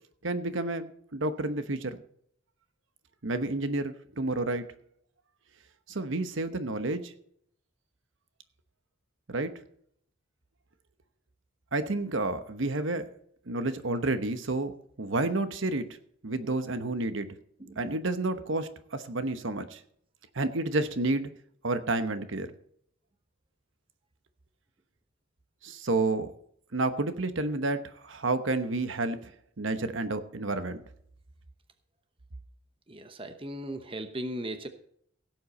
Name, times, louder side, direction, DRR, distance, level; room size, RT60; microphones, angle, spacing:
voice 1, 0.2-2.0 3.2-4.7 5.9-7.1 9.3-9.5 11.7-13.1 13.5-16.0 16.2-17.3 17.8-19.8 20.3-21.3 21.6-22.5 25.6-26.3 26.7-29.3 29.6-30.8, right 2 dB, 65° right, 10 dB, 1.0 m, -30 dB
voice 2, 32.9-34.7, right 1 dB, 25° right, 8 dB, 0.9 m, -37 dB
17.0 x 7.8 x 4.3 m, 0.66 s
head